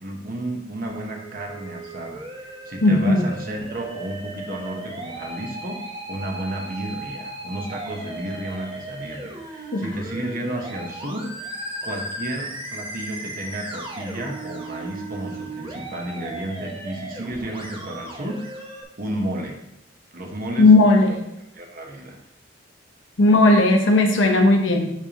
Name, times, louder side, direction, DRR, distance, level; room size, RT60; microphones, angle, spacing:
voice 1, 0.0-5.8 6.1-11.3 11.8-18.4 19.0-19.6 20.1-20.7 21.5-22.2, right 1 dB, 50° right, 1 dB, 1.1 m, -32 dB
Musical instrument, 0.9-18.8, right 2 dB, 30° right, 0.9 m, -36 dB
voice 2, 2.8-3.3 9.7-9.8 20.6-21.2 23.2-24.9, left 2 dB, 70° left, 3 dB, 0.9 m, -16 dB
10.0 x 3.4 x 2.9 m, 0.81 s
head